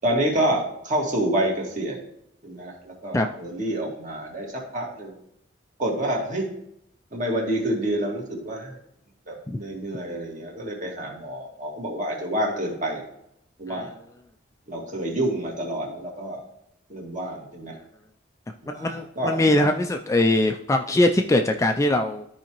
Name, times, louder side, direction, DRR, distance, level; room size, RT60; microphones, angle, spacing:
voice 1, 0.0-2.0 2.4-5.1 5.8-6.5 7.1-8.8 9.3-13.0 13.6-13.9 14.7-16.4 16.9-17.7 18.6-19.7, right 1 dB, 40° right, -1 dB, 1.9 m, -28 dB
voice 2, 18.7-22.3, left 1 dB, 15° left, 5 dB, 0.3 m, -22 dB
13.0 x 4.8 x 3.0 m, 0.76 s
head